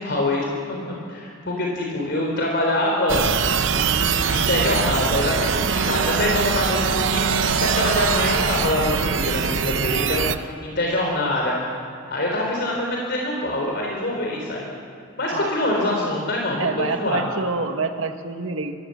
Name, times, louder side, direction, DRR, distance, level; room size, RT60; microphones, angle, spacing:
voice 1, 0.0-3.3 3.7-11.6 12.1-14.6 15.2-16.7 17.0-17.2, left 1 dB, 55° left, -1 dB, 3.8 m, -25 dB
sound 1, 3.1-10.4, right 6 dB, 70° right, 0.8 m, -22 dB
voice 2, 16.6-18.7, right 3 dB, 90° right, 6 dB, 1.8 m, -26 dB
25.5 x 19.5 x 7.8 m, 2.4 s
head